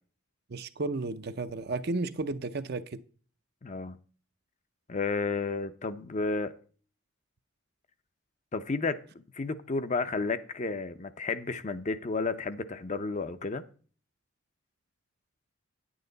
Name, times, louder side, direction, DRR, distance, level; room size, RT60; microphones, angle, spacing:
voice 1, 0.5-3.0, right 3 dB, 50° right, 0.6 m, -33 dB
voice 2, 3.6-4.0 4.9-6.5 8.5-9.0 9.3-13.6, left 3 dB, 35° left, 0.6 m, -32 dB
9.9 x 8.8 x 4.0 m
head